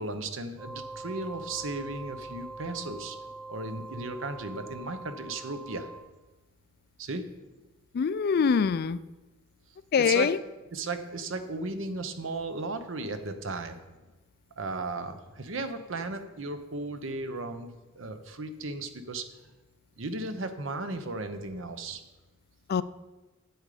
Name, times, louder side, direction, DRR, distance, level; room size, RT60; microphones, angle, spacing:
voice 1, 0.0-3.2 3.5-5.9 7.0-7.3 10.0-10.3 10.7-13.8 14.6-19.2 20.0-22.0, right 2 dB, 65° right, 9 dB, 0.9 m, -35 dB
sound 1, 0.6-6.0, right 2 dB, 10° right, 2.3 m, -43 dB
voice 2, 7.9-9.0 9.9-10.4 22.7-22.8, left 6 dB, 50° left, 16 dB, 0.3 m, -24 dB
8.9 x 8.1 x 4.9 m, 1.1 s
head